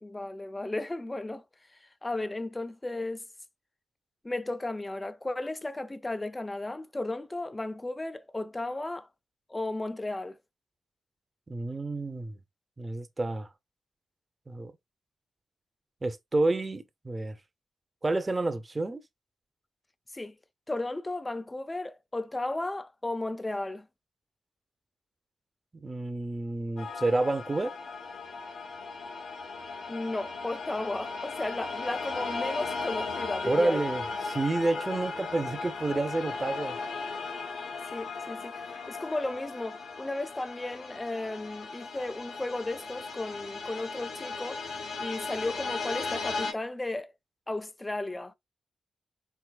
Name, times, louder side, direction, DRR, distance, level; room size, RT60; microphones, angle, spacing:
voice 1, 0.0-1.4 2.0-3.2 4.2-9.1 9.5-10.4 20.1-20.4 20.7-23.9 29.9-33.8 37.9-44.6 45.0-47.1 47.5-48.3, left 2 dB, 15° left, 0.5 m, -34 dB
voice 2, 11.5-12.4 12.8-13.5 14.5-14.7 16.0-17.4 18.0-19.0 25.8-27.7 33.4-36.8, right 2 dB, 25° right, 0.7 m, -29 dB
sound 1, 26.8-46.5, left 4 dB, 65° left, 1.3 m, -37 dB
4.7 x 4.2 x 2.3 m
wide cardioid pair, 115°, 0 cm